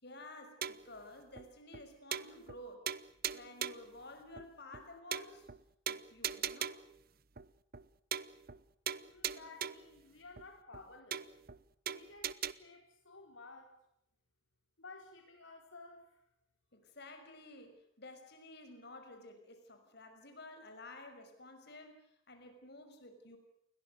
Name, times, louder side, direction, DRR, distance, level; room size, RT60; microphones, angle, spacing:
voice 1, 0.0-2.9 3.3-5.5 5.9-6.8 16.7-23.4, left 2 dB, 55° left, 7 dB, 6.0 m, -52 dB
sound 1, 0.6-1.0 1.4-1.5 1.7-1.8 2.1-2.6 2.9-3.9 4.4-4.5 4.7-4.8 5.1-5.6 5.9-6.9 7.4-7.5 7.7-7.9 8.1-8.6 8.9-9.9 10.4-10.5 10.7-10.8 11.1-11.6 11.9-12.5, right 9 dB, 50° right, 0.9 m, -40 dB
voice 2, 9.0-11.2 11.9-13.7 14.8-16.2, left 3 dB, 75° left, 2 dB, 4.6 m, -54 dB
29.5 x 22.5 x 6.7 m, 0.76 s
head